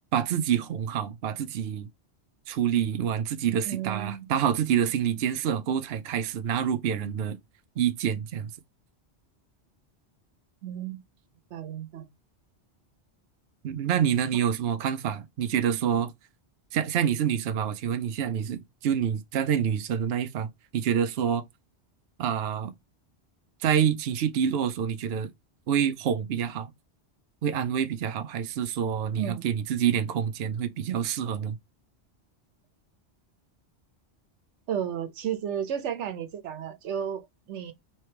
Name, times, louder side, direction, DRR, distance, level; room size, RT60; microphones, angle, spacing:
voice 1, 0.1-1.9 2.5-7.4 7.8-8.5 13.6-16.1 16.7-20.5 20.7-21.4 22.2-22.7 23.6-25.3 25.7-26.7 27.4-31.6, right 8 dB, 65° right, 0.8 m, -27 dB
voice 2, 3.6-4.3 10.6-11.0 11.5-12.1 29.2-29.4 34.7-37.7, right 9 dB, 90° right, 1.1 m, -33 dB
3.3 x 3.2 x 4.4 m
omnidirectional pair, 1.2 m